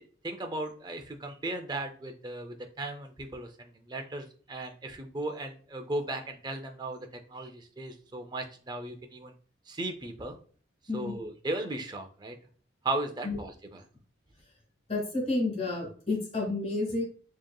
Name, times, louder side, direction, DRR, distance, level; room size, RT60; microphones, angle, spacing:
voice 1, 0.2-9.3 9.7-10.4 10.9-12.4 12.8-13.8, right 2 dB, 20° right, 5 dB, 0.4 m, -36 dB
voice 2, 10.9-11.2 13.2-13.4 14.9-17.0, left 2 dB, 30° left, -1 dB, 1.6 m, -30 dB
4.8 x 2.9 x 2.2 m, 0.42 s
head